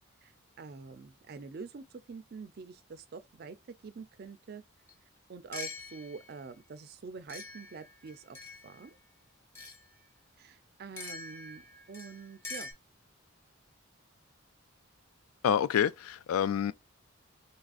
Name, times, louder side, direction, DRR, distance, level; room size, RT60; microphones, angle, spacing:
voice 1, 0.2-3.6 3.8-4.6 5.3-8.4 8.6-9.0 10.4-12.7, right 5 dB, 45° right, 0.4 m, -46 dB
sound 1, 4.9-5.0 5.5-6.4 7.3-8.8 9.6-9.9 11.0-12.7, left 3 dB, 10° left, 0.7 m, -44 dB
voice 2, 15.4-16.7, left 8 dB, 90° left, 0.3 m, -27 dB
4.0 x 2.4 x 2.4 m
head